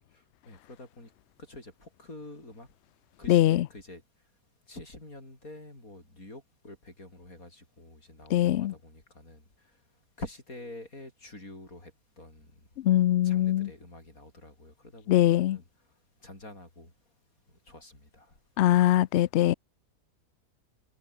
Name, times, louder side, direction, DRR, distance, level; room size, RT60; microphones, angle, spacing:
voice 1, 0.5-1.1 1.5-2.7 3.2-4.0 4.7-9.4 10.2-11.9 12.2-12.5 13.2-15.6 16.2-16.9 17.7-18.3, left 2 dB, 55° left, 7.9 m, -46 dB
voice 2, 3.3-3.7 8.3-8.7 12.8-13.7 15.1-15.6 18.6-19.5, left 13 dB, 80° left, 0.6 m, -22 dB
omnidirectional pair, 1.7 m